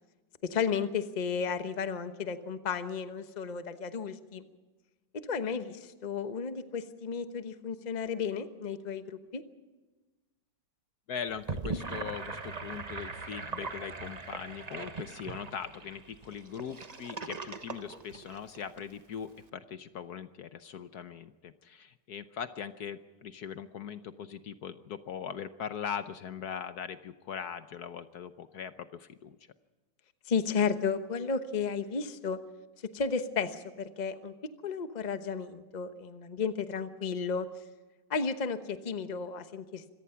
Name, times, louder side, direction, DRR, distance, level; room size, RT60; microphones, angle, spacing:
voice 1, 0.4-4.4 5.1-9.4 30.3-32.4 32.9-34.3 34.6-37.5 38.1-39.8, left 6 dB, 30° left, 9 dB, 1.0 m, -33 dB
voice 2, 11.1-29.4, left 7 dB, 65° left, 11 dB, 1.3 m, -40 dB
Gurgling / Sink (filling or washing), 11.3-18.8, right 4 dB, 25° right, 1.0 m, -40 dB
25.5 x 18.0 x 5.8 m, 1.2 s
omnidirectional pair, 1.9 m